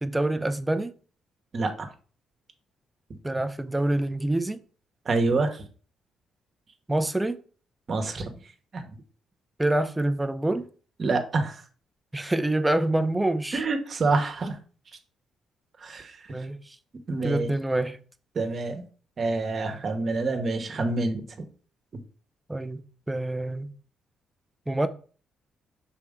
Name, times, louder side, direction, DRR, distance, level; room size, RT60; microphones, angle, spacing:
voice 1, 0.0-0.9 3.2-4.6 6.9-7.4 9.6-10.7 12.1-13.6 16.3-16.8 17.2-18.0 22.5-23.7 24.7-24.9, right 1 dB, 10° right, 0.6 m, -26 dB
voice 2, 1.5-1.9 5.1-5.6 7.9-8.3 8.7-8.8 11.0-11.6 13.5-14.5 15.8-16.1 17.1-17.5 18.3-18.8 19.2-21.2, right 3 dB, 45° right, 1.2 m, -26 dB
5.8 x 4.5 x 3.7 m
cardioid pair, 90°, 0 cm